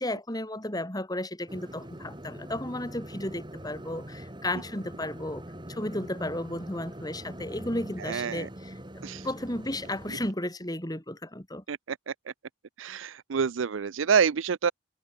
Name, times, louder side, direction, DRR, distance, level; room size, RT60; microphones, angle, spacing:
voice 1, 0.0-5.4 5.7-8.7 9.2-11.6, left 1 dB, 20° left, 5.4 m, -33 dB
sound 1, 1.5-10.3, equal, 25° right, 4.7 m, -43 dB
voice 2, 8.0-8.5 9.0-9.3 11.7-12.1 12.8-14.7, right 6 dB, 80° right, 0.5 m, -27 dB
head